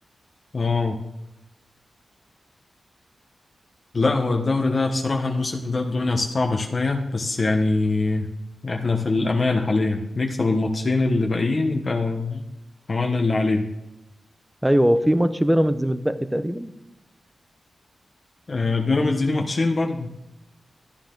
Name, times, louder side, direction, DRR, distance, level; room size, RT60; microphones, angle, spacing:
voice 1, 0.5-1.0 3.9-8.3 8.6-12.4 12.9-13.7 18.5-20.1, left 3 dB, 50° left, 2 dB, 1.2 m, -23 dB
voice 2, 14.6-16.7, equal, 10° right, 11 dB, 0.8 m, -20 dB
13.0 x 9.5 x 3.9 m, 0.93 s
cardioid pair, 60°, 0 cm